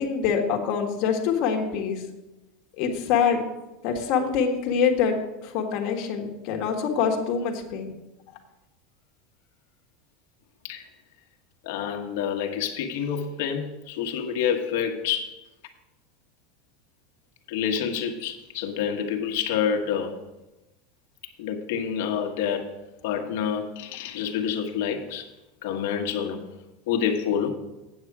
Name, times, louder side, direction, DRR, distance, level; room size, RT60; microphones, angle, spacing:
voice 1, 0.0-2.0 2.8-3.4 3.8-5.2 5.4-7.9, left 6 dB, 50° left, 2 dB, 1.5 m, -25 dB
voice 2, 11.6-15.4 17.5-20.1 21.4-22.7 23.0-25.3 25.6-26.4 26.9-27.5, left 8 dB, 70° left, 4 dB, 1.3 m, -28 dB
8.6 x 8.0 x 4.8 m, 1.0 s
supercardioid pair, 165°, 0 cm